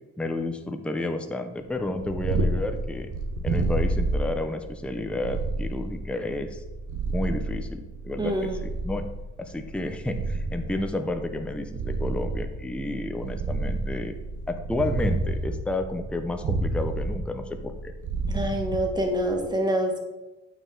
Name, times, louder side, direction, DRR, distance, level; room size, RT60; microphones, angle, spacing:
voice 1, 0.2-3.1 3.4-6.6 7.1-9.1 9.4-14.1 14.5-17.9, left 2 dB, 5° left, 6 dB, 0.6 m, -31 dB
Purr, 1.7-19.4, right 2 dB, 65° right, 1.2 m, -30 dB
voice 2, 8.2-8.6 18.3-20.0, right 1 dB, 15° right, 2 dB, 1.6 m, -26 dB
8.6 x 5.0 x 3.8 m, 1.1 s
cardioid pair, 80°, 32 cm